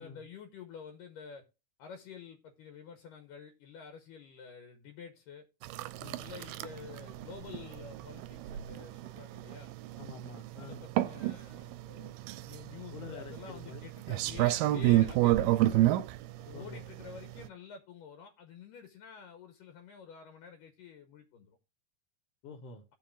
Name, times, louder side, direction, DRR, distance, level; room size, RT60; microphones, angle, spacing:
voice 1, 0.0-1.4 1.8-5.5 6.2-9.7 10.6-12.1 12.4-15.9 16.4-21.6, left 6 dB, 75° left, 7 dB, 2.4 m, -49 dB
sound 1, 5.6-17.5, right 15 dB, 80° right, 2.1 m, -30 dB
voice 2, 10.0-10.9 12.9-14.4 16.5-16.9 22.4-22.8, left 4 dB, 90° left, 4 dB, 1.3 m, -47 dB
17.0 x 5.8 x 2.4 m, 0.28 s
omnidirectional pair, 4.2 m